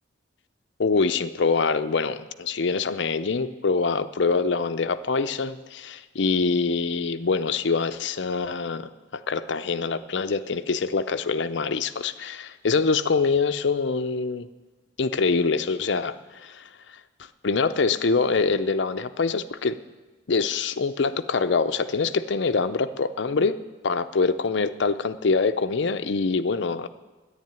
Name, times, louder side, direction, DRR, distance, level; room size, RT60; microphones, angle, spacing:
voice 1, 0.8-14.5 15.0-16.7 17.4-19.8 20.3-23.6 23.8-26.9, left 4 dB, 65° left, 10 dB, 0.6 m, -24 dB
10.5 x 9.7 x 9.4 m, 1.2 s
head